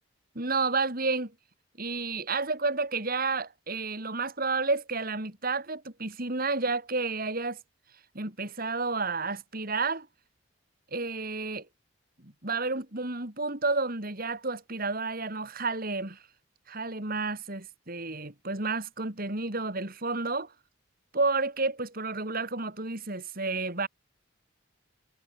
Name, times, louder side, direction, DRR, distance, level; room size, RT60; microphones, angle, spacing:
voice 1, 0.4-1.3 1.8-7.6 8.1-10.1 10.9-11.7 12.2-16.2 16.7-20.5 21.1-23.9, right 3 dB, 45° right, 3.7 m, -31 dB
head